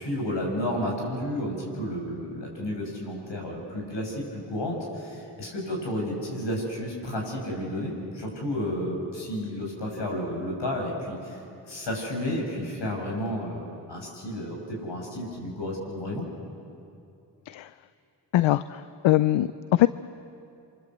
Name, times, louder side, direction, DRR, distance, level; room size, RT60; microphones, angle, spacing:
voice 1, 0.0-11.4 11.7-16.2, left 1 dB, 70° left, -1 dB, 8.0 m, -32 dB
voice 2, 18.3-19.9, left 14 dB, 85° left, 15 dB, 0.6 m, -22 dB
28.5 x 24.5 x 8.1 m, 2.6 s
cardioid pair, 50°, 45 cm